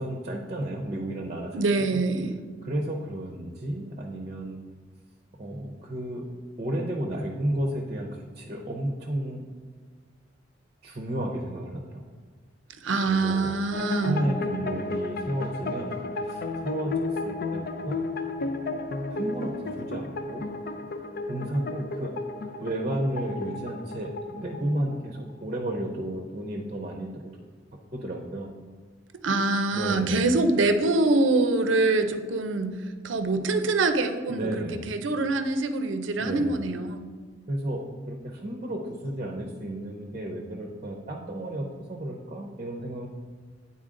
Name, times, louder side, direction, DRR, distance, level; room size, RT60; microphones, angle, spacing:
voice 1, 0.0-1.6 1.9-2.0 2.6-4.6 5.4-6.2 6.6-9.5 10.8-12.0 13.0-13.5 14.0-16.9 17.2-18.0 18.7-18.8 19.1-20.4 21.3-22.1 22.6-27.3 27.9-28.5 29.7-30.3 34.3-34.8 36.2-36.5 37.5-37.8 38.1-43.1, right 1 dB, 35° right, 1 dB, 0.6 m, -32 dB
voice 2, 1.5-2.4 12.8-14.2 29.2-37.1, right 3 dB, 85° right, 8 dB, 0.6 m, -25 dB
sound 1, 13.7-25.4, left 3 dB, 55° left, 0.4 m, -33 dB
8.7 x 4.2 x 3.7 m, 1.5 s
head